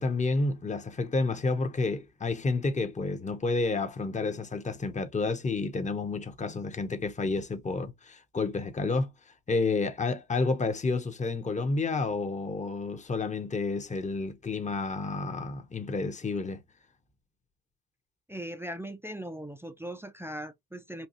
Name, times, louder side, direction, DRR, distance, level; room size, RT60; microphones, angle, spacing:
voice 1, 0.0-9.1 9.5-16.6, left 3 dB, 15° left, 0.8 m, -30 dB
voice 2, 18.3-21.1, right 1 dB, 5° right, 0.5 m, -39 dB
4.3 x 2.3 x 2.5 m
supercardioid pair, 75°, 46 cm